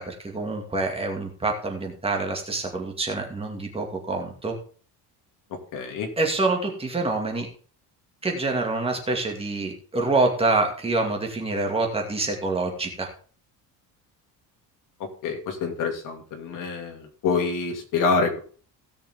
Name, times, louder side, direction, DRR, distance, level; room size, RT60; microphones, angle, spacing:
voice 1, 0.0-4.6 6.2-7.5 8.2-13.1, right 3 dB, 15° right, 2 dB, 2.2 m, -26 dB
voice 2, 5.7-6.1 15.2-18.4, left 4 dB, 50° left, 4 dB, 2.6 m, -26 dB
17.0 x 6.5 x 3.7 m, 0.41 s
cardioid pair, 160°, 39 cm